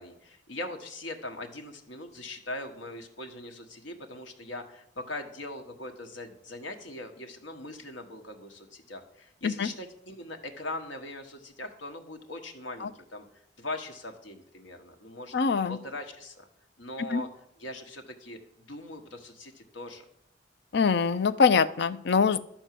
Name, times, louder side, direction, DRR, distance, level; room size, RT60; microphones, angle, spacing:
voice 1, 0.0-13.2 13.6-15.3 15.7-16.5 16.8-17.3 17.6-20.1, left 2 dB, 75° left, 5 dB, 1.3 m, -41 dB
voice 2, 15.3-15.8 17.1-17.2 20.7-22.4, left 5 dB, 60° left, 14 dB, 0.5 m, -24 dB
12.5 x 4.5 x 7.5 m, 0.75 s
head